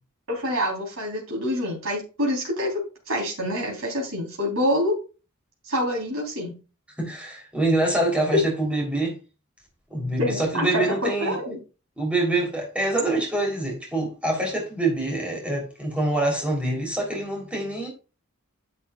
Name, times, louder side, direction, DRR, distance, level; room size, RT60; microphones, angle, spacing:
voice 1, 0.3-5.0 5.6-6.6 8.3-8.4 10.2-11.6, left 1 dB, 70° right, 4.0 m, -26 dB
voice 2, 7.0-9.2 9.9-11.4 12.0-17.9, right 2 dB, 5° right, 3.7 m, -25 dB
10.5 x 7.1 x 2.5 m
head